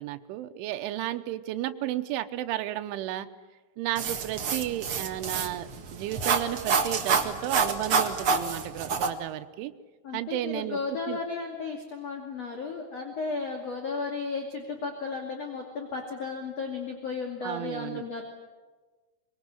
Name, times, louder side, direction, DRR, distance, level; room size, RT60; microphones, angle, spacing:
voice 1, 0.0-3.3 3.8-9.7 10.1-10.8 11.1-11.2 17.4-18.1, right 13 dB, 85° right, 8 dB, 3.4 m, -33 dB
sound 1, 4.0-9.1, right 5 dB, 60° right, 1.4 m, -28 dB
voice 2, 10.0-18.2, left 4 dB, 40° left, 2 dB, 3.1 m, -34 dB
24.5 x 22.5 x 9.9 m, 1.3 s
omnidirectional pair, 5.5 m